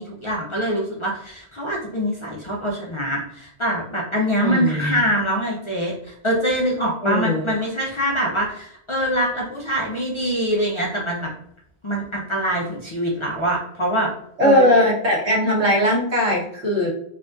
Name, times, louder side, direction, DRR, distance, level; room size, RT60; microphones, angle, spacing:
voice 1, 0.0-11.3 11.8-14.1 14.4-14.7, equal, 40° left, -2 dB, 0.4 m, -24 dB
voice 2, 4.4-5.0 7.0-7.5 14.4-16.9, left 1 dB, 85° right, -4 dB, 1.5 m, -19 dB
4.2 x 2.4 x 2.5 m, 0.73 s
omnidirectional pair, 1.1 m